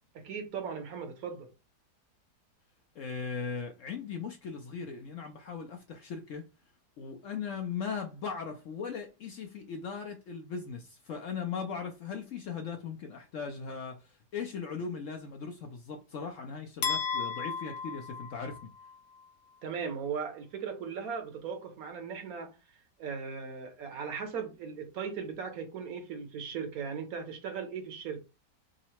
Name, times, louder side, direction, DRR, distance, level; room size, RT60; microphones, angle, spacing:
voice 1, 0.1-1.5 19.6-28.2, right 6 dB, 65° right, 1.2 m, -38 dB
voice 2, 3.0-6.4 7.0-18.7, left 6 dB, 65° left, 0.8 m, -38 dB
sound 1, 16.8-19.0, left 6 dB, 90° left, 1.3 m, -34 dB
3.7 x 2.0 x 4.2 m
omnidirectional pair, 1.8 m